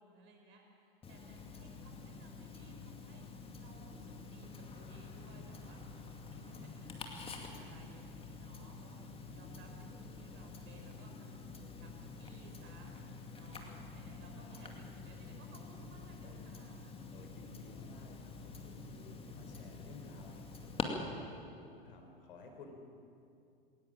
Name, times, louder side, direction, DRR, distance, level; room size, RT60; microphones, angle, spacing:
voice 1, 0.0-3.2 3.6-5.8 6.3-9.0 9.3-11.9 12.2-12.9 13.3-17.0, right 2 dB, 40° right, 2 dB, 5.3 m, -60 dB
Tick-tock, 1.0-20.8, left 4 dB, 20° left, 2.4 m, -48 dB
voice 2, 14.4-14.7 16.2-16.6 17.1-22.7, left 3 dB, 65° left, 4 dB, 3.8 m, -56 dB
20.5 x 19.0 x 7.6 m, 2.4 s
figure-of-eight pair, 90°, 29 cm